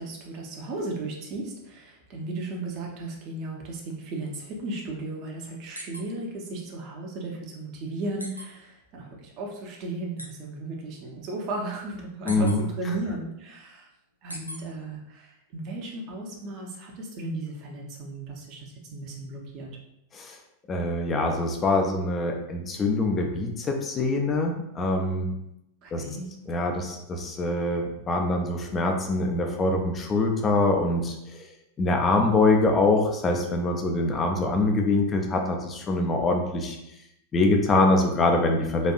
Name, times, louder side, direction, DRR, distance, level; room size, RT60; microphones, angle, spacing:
voice 1, 0.0-13.9 14.2-19.8 25.8-26.3, right 2 dB, 40° right, 0 dB, 0.7 m, -35 dB
sound 1, 5.7-6.0 6.4-6.5 8.2-8.5 10.2-10.3 12.3-12.6 14.3-14.6, equal, 90° left, 0.4 m, -37 dB
voice 2, 12.3-12.6 20.1-20.4 20.7-25.3 25.9-26.0 26.5-31.1 31.8-36.8 37.3-38.9, left 2 dB, 25° left, 3 dB, 0.5 m, -24 dB
4.1 x 2.5 x 2.4 m, 0.84 s
figure-of-eight pair, 90°, 0 cm